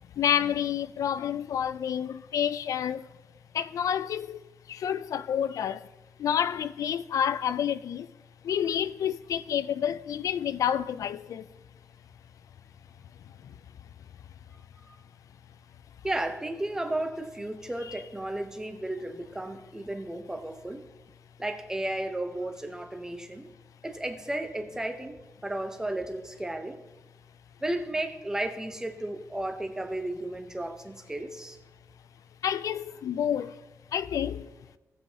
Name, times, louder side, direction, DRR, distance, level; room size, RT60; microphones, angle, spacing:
voice 1, 0.0-3.1 3.5-4.4 4.7-5.9 6.2-8.1 8.4-11.5 13.4-13.5 32.4-33.6 33.9-34.5, left 9 dB, 85° left, 0.4 m, -29 dB
voice 2, 16.0-20.8 21.4-23.5 23.8-25.2 25.4-26.8 27.6-31.6, right 1 dB, 10° right, 0.7 m, -33 dB
18.0 x 7.3 x 2.8 m
wide cardioid pair, 175°, 6 cm